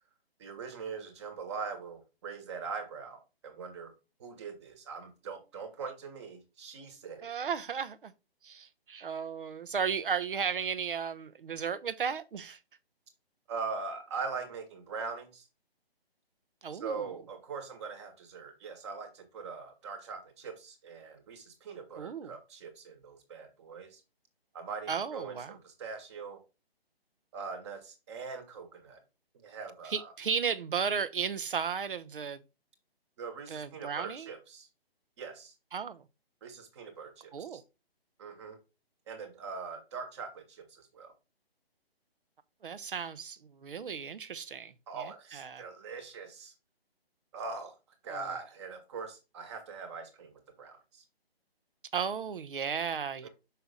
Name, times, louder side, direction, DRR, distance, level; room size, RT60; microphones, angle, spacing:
voice 1, 0.4-3.9 4.2-7.3 13.5-15.4 16.7-24.0 24.5-26.4 27.3-29.0 29.3-30.1 33.2-34.7 35.2-35.5 36.4-37.6 38.2-38.6 39.1-41.1 44.9-46.5 47.3-47.7 48.0-51.0 53.2-53.3, right 5 dB, 30° right, 1.5 m, -42 dB
voice 2, 7.2-8.1 8.4-12.6 16.6-17.1 22.0-22.4 24.9-25.6 29.8-32.4 33.5-34.3 35.7-36.0 37.3-37.6 42.6-45.6 48.1-48.3 51.9-53.3, right 6 dB, 60° right, 0.8 m, -35 dB
5.8 x 5.6 x 3.7 m
figure-of-eight pair, 140°, 31 cm